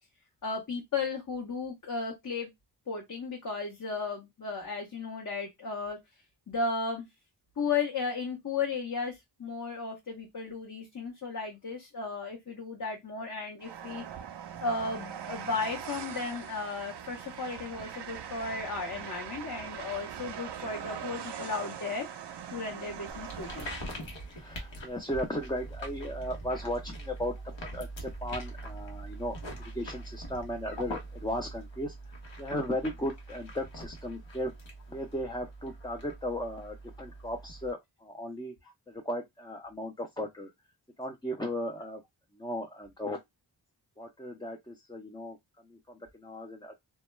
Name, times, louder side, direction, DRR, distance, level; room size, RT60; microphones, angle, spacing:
voice 1, 0.4-2.5 2.9-6.0 6.5-7.1 7.6-14.0 14.6-22.1 22.5-23.7, left 4 dB, 45° left, 0.8 m, -35 dB
Train, 13.6-24.1, right 8 dB, 65° right, 0.6 m, -41 dB
sound 1, 23.1-37.7, right 1 dB, 75° left, 1.0 m, -43 dB
voice 2, 24.3-27.3 27.7-29.4 29.7-31.9 32.4-34.5 34.9-38.5 38.9-40.5 41.0-42.0 42.4-43.2 44.0-45.4 45.7-46.7, equal, 10° left, 0.4 m, -36 dB
2.2 x 2.2 x 3.0 m
cardioid pair, 60°, 45 cm